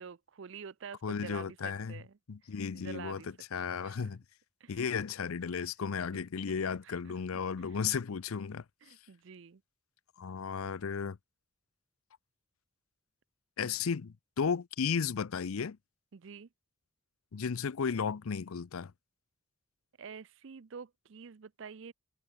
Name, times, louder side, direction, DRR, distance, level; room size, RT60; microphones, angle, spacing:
voice 1, 0.0-2.2 2.7-3.3 3.6-4.1 4.6-4.8 5.5-5.7 6.5-7.4 8.8-9.6 16.1-16.5 20.0-21.9, right 6 dB, 60° right, 0.5 m, -48 dB
voice 2, 1.0-2.0 2.3-3.2 3.5-4.2 4.7-8.6 10.2-11.2 13.6-15.8 17.3-18.9, left 6 dB, 85° left, 0.5 m, -34 dB
head